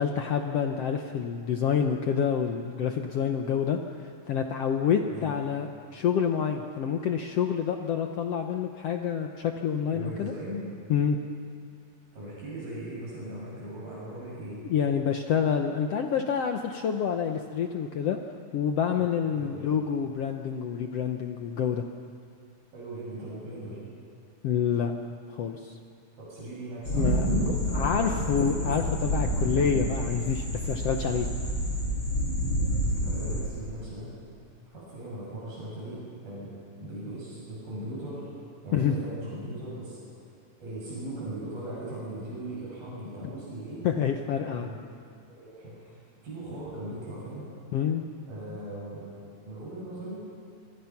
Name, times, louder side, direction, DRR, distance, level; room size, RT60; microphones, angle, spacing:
voice 1, 0.0-10.3 10.9-11.2 14.6-18.2 18.5-21.8 24.4-24.9 25.3-25.8 26.9-27.3 27.7-31.3 38.7-39.0 43.2-43.3 43.8-44.7 47.7-48.0 48.5-48.6, left 7 dB, 80° left, 4 dB, 1.4 m, -28 dB
voice 2, 9.9-10.6 12.1-14.6 19.3-19.7 22.7-23.8 26.2-28.8 33.0-34.1 34.7-38.3 38.6-40.3 40.6-43.9 44.4-44.8 45.3-46.0 46.2-47.5 48.3-49.0 49.4-50.2, right 1 dB, 85° right, -6 dB, 8.7 m, -39 dB
sound 1, 26.8-33.4, equal, 30° left, 7.3 m, -28 dB
27.0 x 23.5 x 5.9 m, 2.4 s
omnidirectional pair, 4.0 m